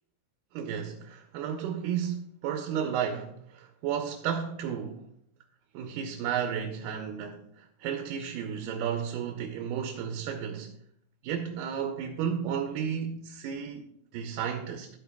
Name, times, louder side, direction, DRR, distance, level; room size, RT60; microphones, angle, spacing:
voice 1, 0.5-5.0 5.7-10.7 11.2-13.8 14.1-14.9, right 8 dB, 85° right, 2.4 m, -33 dB
12.0 x 8.7 x 2.3 m
omnidirectional pair, 3.7 m